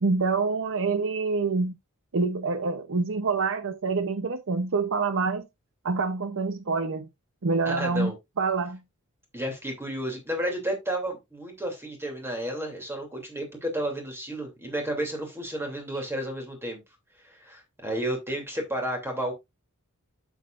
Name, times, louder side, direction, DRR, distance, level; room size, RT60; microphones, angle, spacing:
voice 1, 0.0-1.7 2.1-5.5 5.8-7.1 7.4-8.8, right 4 dB, 60° right, 0.8 m, -26 dB
voice 2, 7.6-8.1 9.3-16.8 17.2-19.3, right 1 dB, 10° right, 2.8 m, -32 dB
9.2 x 7.3 x 2.5 m
head